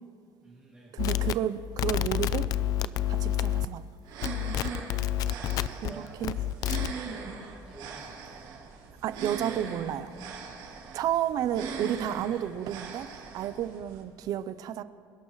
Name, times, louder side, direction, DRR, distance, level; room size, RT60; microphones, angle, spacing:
voice 1, 0.4-1.1 5.5-6.2 7.6-8.5 10.8-11.1, right 2 dB, 10° right, 2.3 m, -51 dB
voice 2, 0.9-2.5 3.1-3.9 5.8-5.9 6.2-6.3 9.0-10.1 10.9-13.1 13.3-14.8, right 11 dB, 45° right, 0.6 m, -31 dB
sound 1, 1.0-3.9 4.2-5.9 6.2-6.9, left 12 dB, 45° left, 0.4 m, -29 dB
sound 2, 4.0-14.0, right 5 dB, 65° right, 4.0 m, -40 dB
27.0 x 11.5 x 3.1 m
cardioid pair, 160°, 9 cm